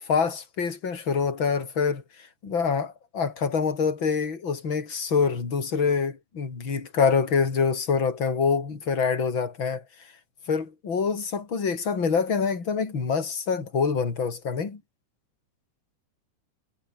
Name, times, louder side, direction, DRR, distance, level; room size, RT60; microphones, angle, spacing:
voice 1, 0.0-9.8 10.5-14.8, left 5 dB, 35° left, 4.2 m, -26 dB
omnidirectional pair, 3.8 m